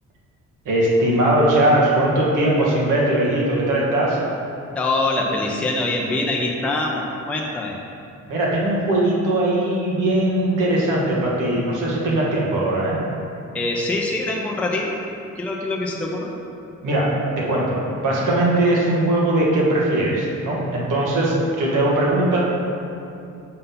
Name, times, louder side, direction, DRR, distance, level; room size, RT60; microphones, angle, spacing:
voice 1, 0.6-4.2 8.3-13.0 16.8-22.5, right 1 dB, 85° right, -4 dB, 1.6 m, -20 dB
voice 2, 4.8-7.8 13.5-15.0 15.4-16.3, left 2 dB, 5° left, -2 dB, 0.4 m, -24 dB
6.7 x 3.8 x 5.6 m, 2.6 s
cardioid pair, 165°, 30 cm